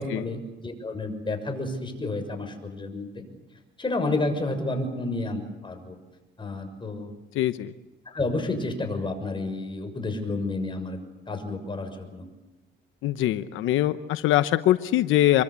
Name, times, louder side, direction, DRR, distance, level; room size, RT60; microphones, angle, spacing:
voice 1, 0.0-3.2 3.8-6.0 6.4-7.1 8.0-11.0 11.3-12.3, left 2 dB, 25° left, 5 dB, 6.5 m, -30 dB
voice 2, 7.3-7.7 13.0-15.4, left 13 dB, 90° left, 11 dB, 0.9 m, -23 dB
26.5 x 23.5 x 8.3 m, 1.1 s
cardioid pair, 90°, 20 cm